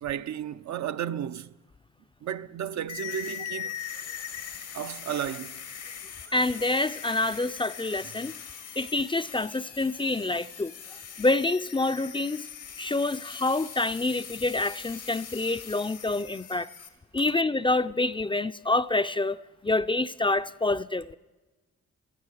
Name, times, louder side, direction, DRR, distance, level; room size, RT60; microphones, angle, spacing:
voice 1, 0.0-1.6 2.2-3.8 4.7-5.6, right 9 dB, 65° right, 0.5 m, -33 dB
sound 1, 2.9-16.9, left 8 dB, 90° left, 1.7 m, -41 dB
voice 2, 6.3-8.3 8.8-10.7 11.2-12.4 12.8-16.7 17.1-21.2, left 2 dB, 15° left, 0.4 m, -27 dB
18.0 x 13.0 x 4.8 m
cardioid pair, 55°, 30 cm